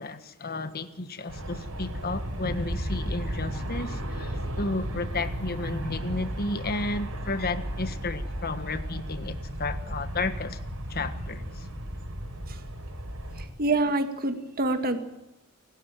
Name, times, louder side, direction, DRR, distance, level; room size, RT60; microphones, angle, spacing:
voice 1, 0.0-10.6 10.9-11.7, left 2 dB, 45° left, 1.5 m, -33 dB
Aircraft, 1.3-13.5, equal, 70° right, 4.4 m, -34 dB
voice 2, 13.4-15.0, right 2 dB, 45° right, 2.2 m, -26 dB
28.5 x 13.0 x 9.2 m
head